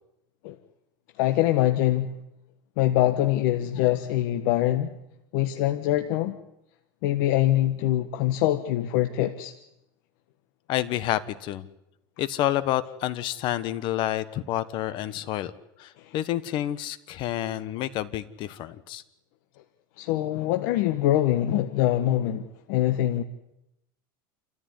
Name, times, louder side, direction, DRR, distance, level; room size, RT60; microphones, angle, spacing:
voice 1, 1.2-2.1 2.8-4.9 5.3-6.4 7.0-9.5 16.0-16.1 20.0-23.2, left 13 dB, 65° left, 7 dB, 1.4 m, -24 dB
voice 2, 10.7-11.7 12.2-15.5 15.8-19.0, left 13 dB, 45° left, 15 dB, 1.3 m, -29 dB
28.5 x 14.0 x 9.7 m, 0.85 s
supercardioid pair, 150°, 11 cm